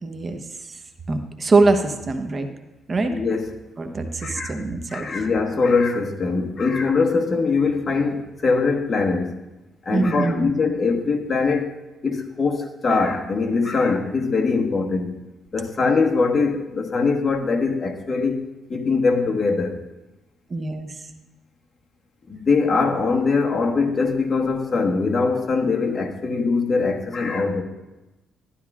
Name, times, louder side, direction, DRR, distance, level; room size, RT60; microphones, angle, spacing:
voice 1, 0.0-0.8 1.1-2.5 2.9-3.1 3.8-5.1 9.9-10.5 20.5-21.0, right 3 dB, 35° right, 6 dB, 0.9 m, -23 dB
voice 2, 3.1-3.5 4.2-9.3 9.8-11.7 12.0-15.1 15.5-19.8 22.3-27.6, left 4 dB, 40° left, 3 dB, 1.3 m, -22 dB
12.5 x 12.0 x 2.4 m, 1.0 s
cardioid pair, 90°, 0 cm